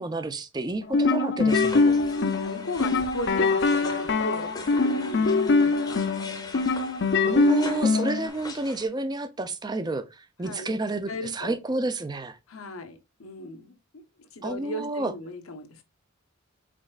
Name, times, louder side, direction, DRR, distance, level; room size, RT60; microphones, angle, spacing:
voice 1, 0.0-2.0 7.3-12.4 14.4-15.1, right 2 dB, 20° right, 0.5 m, -30 dB
sound 1, 0.8-8.3, left 3 dB, 55° left, 0.5 m, -23 dB
sound 2, 1.5-8.9, left 3 dB, 20° left, 0.8 m, -42 dB
voice 2, 2.0-6.0 7.2-7.7 10.4-10.8 11.1-11.6 12.5-13.8 14.3-15.8, left 1 dB, 85° left, 1.0 m, -37 dB
5.1 x 4.3 x 2.3 m
head